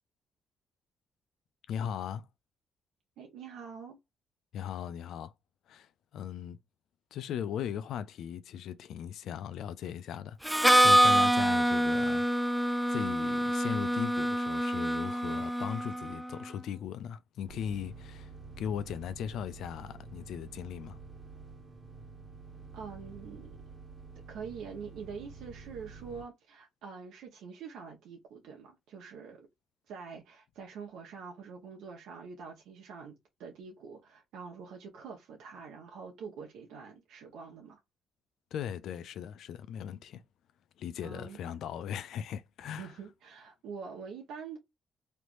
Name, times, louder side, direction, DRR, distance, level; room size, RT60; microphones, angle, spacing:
voice 1, 1.7-2.2 4.5-5.3 5.7-6.6 7.1-12.2 12.6-18.3 18.6-21.0 38.5-40.2 40.8-42.9, left 9 dB, 75° left, 0.4 m, -38 dB
voice 2, 3.2-4.0 22.7-23.6 24.3-29.5 29.9-33.1 33.4-37.8 41.0-41.4 42.7-44.6, right 6 dB, 85° right, 0.9 m, -45 dB
Harmonica, 10.4-16.2, equal, 5° right, 0.3 m, -26 dB
sound 1, 17.5-26.2, right 4 dB, 30° right, 1.4 m, -49 dB
3.2 x 3.0 x 2.5 m
cardioid pair, 90°, 0 cm